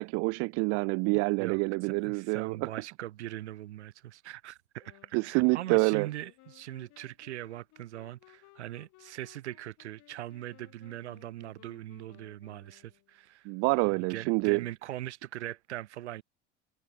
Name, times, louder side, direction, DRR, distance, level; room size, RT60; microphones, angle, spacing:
voice 1, 0.0-2.6 5.1-6.1 13.5-14.6, right 32 dB, 45° right, 0.4 m, -27 dB
voice 2, 1.4-13.5 13.8-16.2, right 14 dB, 70° right, 1.8 m, -41 dB
sound 1, 4.8-13.2, left 20 dB, 50° left, 7.8 m, -60 dB
figure-of-eight pair, 70°, 35 cm